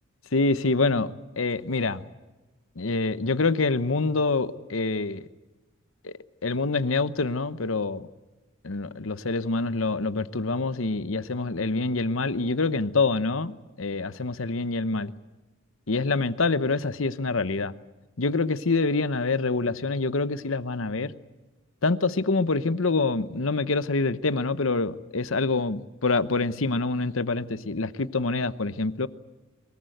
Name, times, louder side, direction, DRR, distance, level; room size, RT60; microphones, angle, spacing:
voice 1, 0.3-2.1 2.8-5.3 6.0-6.1 6.4-8.1 8.6-15.1 15.9-17.8 18.2-21.1 21.8-29.1, left 3 dB, 70° left, 14 dB, 1.0 m, -26 dB
23.0 x 21.5 x 9.2 m, 1.1 s
head